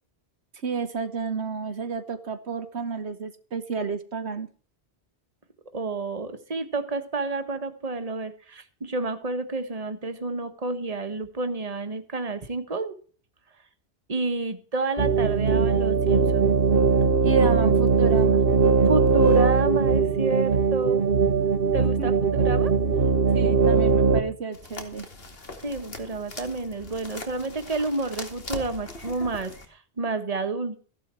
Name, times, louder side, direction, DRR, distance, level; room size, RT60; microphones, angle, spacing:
voice 1, 0.6-4.5 17.2-18.4 21.8-22.1 23.3-25.1, right 5 dB, 75° right, 9 dB, 1.6 m, -31 dB
voice 2, 5.7-12.9 14.1-16.5 18.9-21.0 21.7-22.7 25.6-30.8, right 3 dB, 35° right, 9 dB, 1.6 m, -30 dB
sound 1, 15.0-24.2, right 5 dB, 55° right, 1.4 m, -20 dB
sound 2, 24.5-29.7, left 2 dB, 60° left, 2.6 m, -41 dB
15.5 x 11.5 x 4.6 m, 0.41 s
omnidirectional pair, 1.1 m